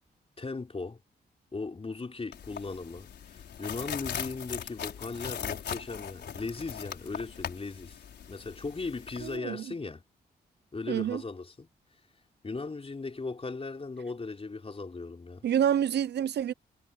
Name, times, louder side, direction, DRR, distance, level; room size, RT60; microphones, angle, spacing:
voice 1, 0.4-1.0 1.5-10.0 10.7-11.7 12.4-15.5, left 3 dB, 35° left, 4.0 m, -38 dB
sound 1, 2.3-9.4, left 8 dB, 75° left, 5.1 m, -40 dB
voice 2, 9.2-9.7 10.9-11.2 15.4-16.5, right 9 dB, 75° right, 0.7 m, -28 dB
cardioid pair, 65°, 18 cm